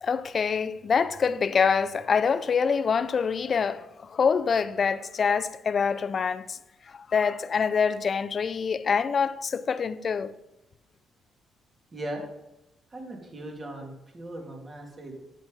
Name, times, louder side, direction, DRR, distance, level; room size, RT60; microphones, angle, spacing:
voice 1, 0.0-6.6 6.9-10.3, left 6 dB, 45° left, 0.5 m, -25 dB
voice 2, 11.9-12.2 12.9-15.2, right 1 dB, 35° right, 2.5 m, -38 dB
8.9 x 7.3 x 5.2 m
cardioid pair, 90°, 0 cm